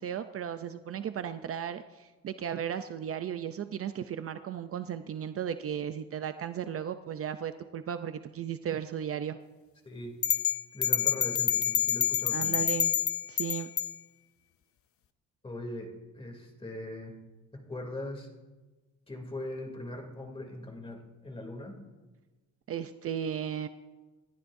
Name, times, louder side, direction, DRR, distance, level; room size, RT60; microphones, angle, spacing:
voice 1, 0.0-9.4 12.3-12.9 13.3-13.7 22.7-23.7, right 9 dB, 45° right, 10 dB, 0.6 m, -35 dB
voice 2, 9.8-10.2 10.7-12.6 15.4-17.2 17.5-18.3 19.1-21.8, left 1 dB, 15° left, 2 dB, 2.9 m, -40 dB
sound 1, 10.2-13.9, left 9 dB, 45° left, 0.7 m, -27 dB
28.5 x 12.5 x 2.7 m, 1.2 s
cardioid pair, 130°, 31 cm